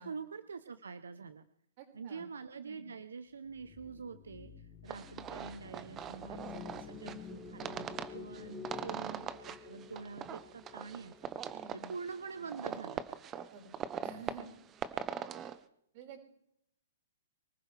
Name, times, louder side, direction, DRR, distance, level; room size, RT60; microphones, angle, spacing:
voice 1, 0.0-1.5 1.9-13.1 15.4-15.6, right 5 dB, 90° right, 11 dB, 0.8 m, -46 dB
voice 2, 1.8-2.3 2.6-2.9 8.3-8.9 11.5-11.9 13.5-13.7 14.0-14.5 15.9-16.2, right 4 dB, 45° right, 2 dB, 5.6 m, -51 dB
sound 1, 3.4-11.8, left 7 dB, 20° left, 2.5 m, -50 dB
sound 2, 4.9-15.6, right 8 dB, 20° right, 0.9 m, -42 dB
24.5 x 15.0 x 3.5 m, 0.74 s
hypercardioid pair, 140°, 0 cm